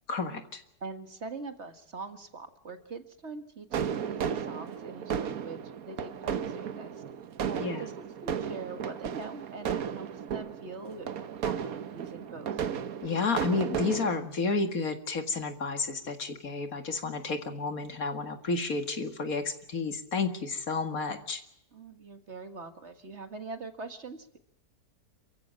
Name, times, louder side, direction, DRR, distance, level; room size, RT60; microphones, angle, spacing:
voice 1, 0.1-0.6 7.6-7.9 13.0-21.4, left 4 dB, 65° left, 7 dB, 2.4 m, -31 dB
voice 2, 0.8-7.0 7.4-7.9 8.2-12.6 21.7-24.4, right 3 dB, 45° right, 8 dB, 1.9 m, -43 dB
sound 1, 3.7-14.2, right 8 dB, 70° right, 1.4 m, -34 dB
28.5 x 15.0 x 7.5 m, 0.80 s
omnidirectional pair, 1.6 m